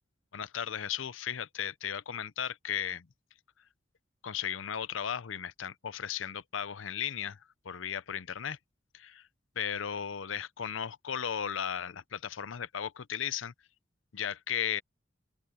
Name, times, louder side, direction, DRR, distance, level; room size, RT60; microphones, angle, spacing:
voice 1, 0.3-3.1 4.2-7.4 7.6-8.6 8.9-9.3 9.6-13.5 14.1-14.8, left 8 dB, 90° left, 0.6 m, -35 dB
open air
head